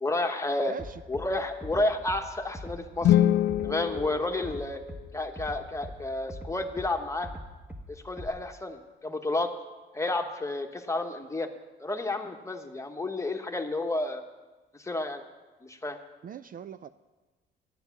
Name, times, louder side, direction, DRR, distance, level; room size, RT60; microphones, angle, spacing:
voice 1, 0.0-0.7 1.1-3.1 3.6-4.8 5.1-7.3 7.9-9.5 9.9-11.5 11.8-14.2 14.8-15.2 15.6-16.0, left 2 dB, 15° left, 5 dB, 1.2 m, -31 dB
voice 2, 0.7-1.0 16.2-16.9, right 8 dB, 45° right, 12 dB, 0.4 m, -41 dB
Bass drum, 0.8-1.3 1.6-2.2 2.5-3.2 3.5-4.1 4.4-5.0 5.4-6.0 6.3-6.9 7.2-7.8 8.2-8.3, equal, 5° right, 1.2 m, -41 dB
sound 1, 3.0-5.2, left 12 dB, 60° left, 0.4 m, -25 dB
10.5 x 9.4 x 7.1 m, 1.2 s
cardioid pair, 90°, 20 cm